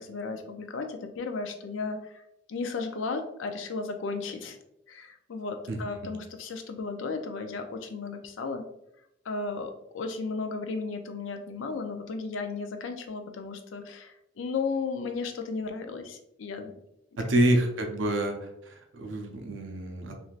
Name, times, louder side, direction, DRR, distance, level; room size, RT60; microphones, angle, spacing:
voice 1, 0.0-2.2 2.5-4.6 4.9-8.6 9.3-16.7 17.2-17.6, left 4 dB, 85° left, 6 dB, 0.4 m, -34 dB
voice 2, 17.2-20.2, right 1 dB, 75° right, 3 dB, 0.5 m, -27 dB
3.1 x 2.5 x 2.4 m, 0.81 s
head